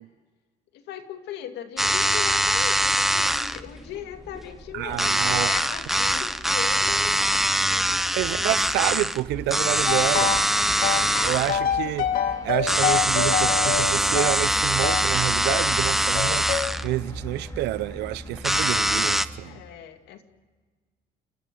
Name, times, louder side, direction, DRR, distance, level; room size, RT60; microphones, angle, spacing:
voice 1, 0.7-9.0 11.8-11.9 19.4-20.2, left 10 dB, 80° left, 2.2 m, -38 dB
sound 1, 1.8-19.3, equal, ahead, 0.7 m, -24 dB
sound 2, 2.7-19.4, equal, 20° left, 5.3 m, -41 dB
voice 2, 4.7-5.5 8.2-10.4 11.2-12.1 12.4-16.5 16.8-19.6, right 16 dB, 85° right, 0.7 m, -28 dB
sound 3, 9.9-10.5 10.8-15.1 15.5-15.7 16.1-16.7, left 7 dB, 60° left, 2.2 m, -26 dB
28.5 x 12.5 x 9.0 m
cardioid pair, 110°, 17 cm